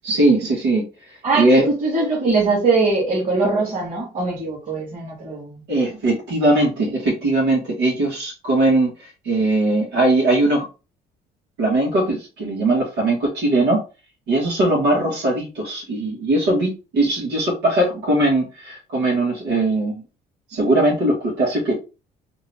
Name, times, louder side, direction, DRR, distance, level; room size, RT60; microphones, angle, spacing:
voice 1, 0.0-0.8 1.3-1.7 5.7-10.7 11.6-13.8 14.3-20.0 20.5-21.7, right 2 dB, 85° right, 2.0 m, -20 dB
voice 2, 1.2-5.6, right 3 dB, 50° right, 2.2 m, -21 dB
3.6 x 2.8 x 3.5 m
cardioid pair, 110°, 17 cm